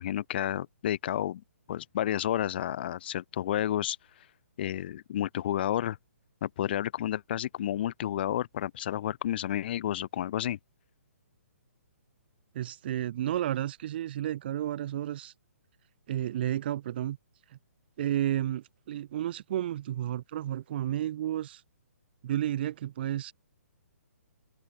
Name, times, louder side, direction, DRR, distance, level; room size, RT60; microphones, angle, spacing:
voice 1, 0.0-1.4 1.7-4.0 4.6-6.0 6.4-10.6, left 12 dB, 40° left, 3.6 m, -31 dB
voice 2, 12.5-15.3 16.1-17.2 17.5-17.6 18.0-21.6 22.2-23.3, right 12 dB, 40° right, 7.9 m, -32 dB
open air
figure-of-eight pair, 130°, 8 cm